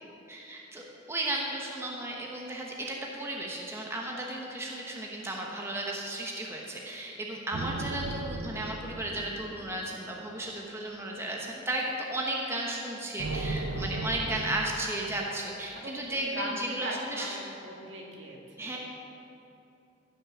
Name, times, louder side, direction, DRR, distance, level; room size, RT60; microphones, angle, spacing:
voice 1, 0.3-17.4 18.6-18.8, right 1 dB, 15° right, -2 dB, 0.9 m, -34 dB
sound 1, 7.5-10.2 13.2-14.6, right 2 dB, 90° right, 0.8 m, -36 dB
voice 2, 15.7-18.7, equal, 70° right, -2 dB, 2.0 m, -39 dB
15.0 x 6.1 x 6.2 m, 2.8 s
head